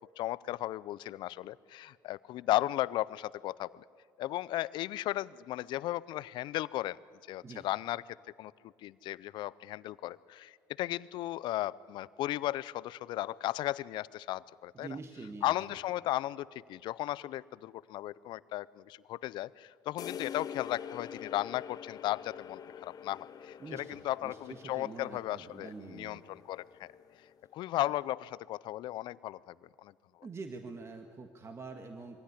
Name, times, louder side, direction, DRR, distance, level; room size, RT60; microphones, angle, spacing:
voice 1, 0.2-3.8 4.2-7.0 7.3-8.0 8.4-8.5 8.8-14.9 15.4-26.9 27.5-29.9, left 15 dB, 70° left, 20 dB, 0.5 m, -35 dB
voice 2, 14.7-15.5 23.6-26.2 30.2-32.2, right 4 dB, 35° right, 5 dB, 1.7 m, -45 dB
sound 1, 20.0-27.5, left 8 dB, 50° left, 1.0 m, -46 dB
23.5 x 16.5 x 10.0 m, 2.2 s
supercardioid pair, 80°, 8 cm